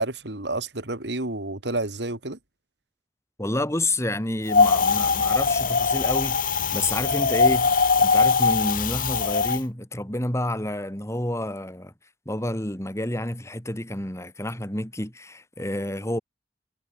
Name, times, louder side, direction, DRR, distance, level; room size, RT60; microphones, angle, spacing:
voice 1, 0.0-2.4, right 2 dB, 70° right, 3.0 m, -29 dB
voice 2, 3.4-7.7 8.0-11.9 12.2-16.2, left 1 dB, 15° left, 3.2 m, -29 dB
Wind, 4.5-9.6, left 4 dB, 50° left, 1.2 m, -21 dB
head